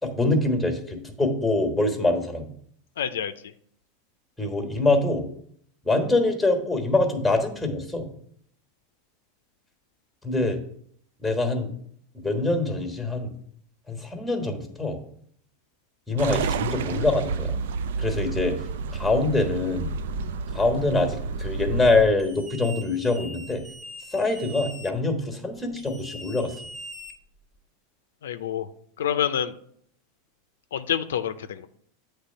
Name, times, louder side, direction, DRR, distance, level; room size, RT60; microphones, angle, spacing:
voice 1, 0.0-2.5 4.4-5.3 5.8-8.1 10.2-10.6 11.2-11.8 12.1-13.3 13.9-15.0 16.1-17.5 18.0-18.6 18.9-19.9 20.5-23.6 24.1-26.6, left 2 dB, 5° left, 4 dB, 1.4 m, -24 dB
voice 2, 3.0-3.3 28.2-28.7 29.0-29.5 30.7-31.7, left 9 dB, 85° left, 11 dB, 0.4 m, -27 dB
sound 1, 16.2-22.0, right 4 dB, 80° right, 0.4 m, -30 dB
sound 2, 22.2-24.9 25.8-27.6, right 1 dB, 25° right, 1.2 m, -42 dB
8.0 x 3.3 x 5.5 m, 0.65 s
hypercardioid pair, 115°, 0 cm